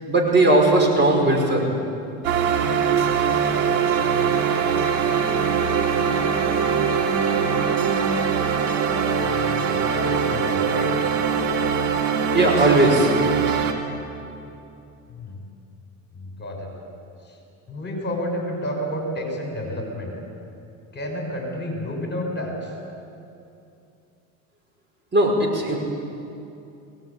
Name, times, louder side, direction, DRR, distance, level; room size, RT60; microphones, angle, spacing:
voice 1, 0.0-1.7 12.3-13.1 25.1-25.8, right 2 dB, 30° right, 0 dB, 5.6 m, -18 dB
sound 1, 2.2-13.7, right 6 dB, 85° right, 3.3 m, -22 dB
voice 2, 9.2-10.9 15.1-15.4 16.1-16.7 17.3-17.4 17.7-20.1 20.9-22.7, equal, 25° left, 1 dB, 6.4 m, -30 dB
23.0 x 19.0 x 8.8 m, 2.7 s
supercardioid pair, 110°, 39 cm